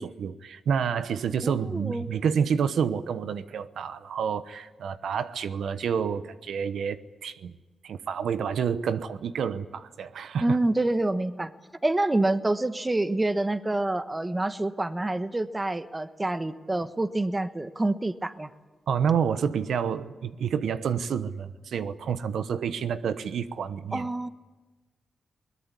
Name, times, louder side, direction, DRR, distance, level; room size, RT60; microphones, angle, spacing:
voice 1, 0.0-7.5 7.8-10.6 18.9-24.1, right 7 dB, 85° right, 12 dB, 1.0 m, -29 dB
voice 2, 1.4-2.1 10.4-11.5 11.8-18.5 23.9-24.3, right 2 dB, 20° right, 11 dB, 1.2 m, -27 dB
22.0 x 20.0 x 9.8 m, 1.2 s
cardioid pair, 90°, 0 cm